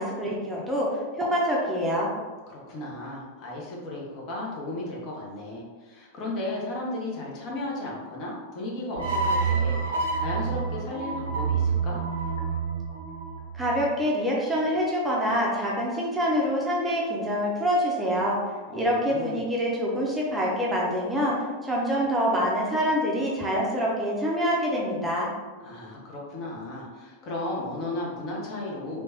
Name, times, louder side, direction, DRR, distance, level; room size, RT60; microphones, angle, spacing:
voice 1, 0.0-2.1 13.5-18.4 18.7-21.4 21.6-25.3, equal, 10° right, -4 dB, 0.6 m, -26 dB
voice 2, 2.5-12.0 18.7-19.4 25.6-29.0, left 2 dB, 40° left, -3 dB, 0.7 m, -35 dB
sound 1, 9.0-14.2, right 5 dB, 65° right, 0.5 m, -28 dB
3.2 x 2.1 x 2.7 m, 1.3 s
figure-of-eight pair, 90°, 0 cm